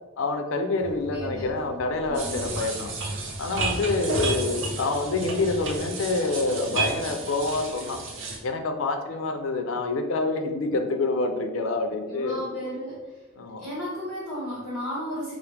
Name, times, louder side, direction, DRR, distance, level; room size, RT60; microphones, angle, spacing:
voice 1, 0.2-2.9 3.4-8.0 8.4-12.4 13.4-13.6, left 3 dB, 80° left, 5 dB, 0.5 m, -27 dB
sound 1, 0.8-5.9, right 1 dB, 35° right, 0.3 m, -40 dB
voice 2, 1.1-2.4 12.1-13.0 13.6-15.4, equal, 5° left, -10 dB, 1.0 m, -34 dB
sound 2, 2.1-8.4, right 3 dB, 70° right, 0.7 m, -31 dB
4.7 x 2.0 x 3.3 m, 1.2 s
head